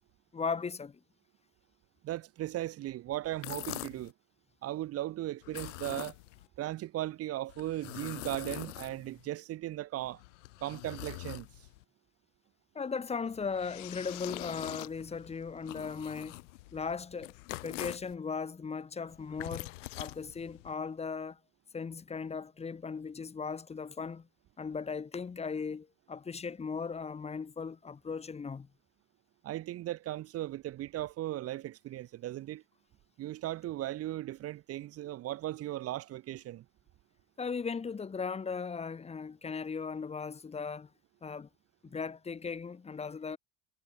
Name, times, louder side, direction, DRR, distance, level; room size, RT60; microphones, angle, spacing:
voice 1, 0.3-1.0 12.7-16.4 16.7-17.3 17.6-21.4 21.7-24.3 24.6-28.7 37.4-40.9 41.2-41.5 41.8-43.4, left 5 dB, 15° left, 3.7 m, -37 dB
voice 2, 2.0-4.1 4.6-6.2 6.6-10.2 10.6-11.5 29.4-32.6 33.2-36.6, right 14 dB, 40° right, 2.7 m, -37 dB
sound 1, 3.2-4.1 5.4-6.5 7.5-9.3 10.0-11.8 13.2-18.1 19.1-20.7, left 21 dB, 85° left, 2.2 m, -44 dB
supercardioid pair, 140°, 36 cm